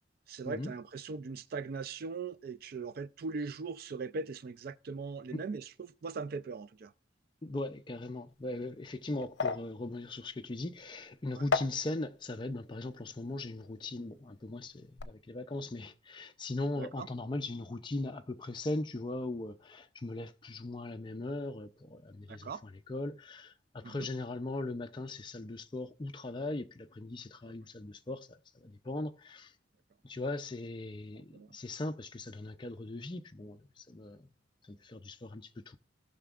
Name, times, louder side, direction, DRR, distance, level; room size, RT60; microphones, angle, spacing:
voice 1, 0.3-6.9 11.4-11.5 16.8-17.1 22.3-22.6 23.8-24.1 31.3-31.5, right 4 dB, 55° right, 0.4 m, -40 dB
voice 2, 7.4-29.5 30.0-34.3 34.6-35.8, left 2 dB, 25° left, 0.5 m, -39 dB
sound 1, 8.3-14.5 14.7-15.0, left 5 dB, 75° left, 0.7 m, -38 dB
17.0 x 5.9 x 2.4 m
head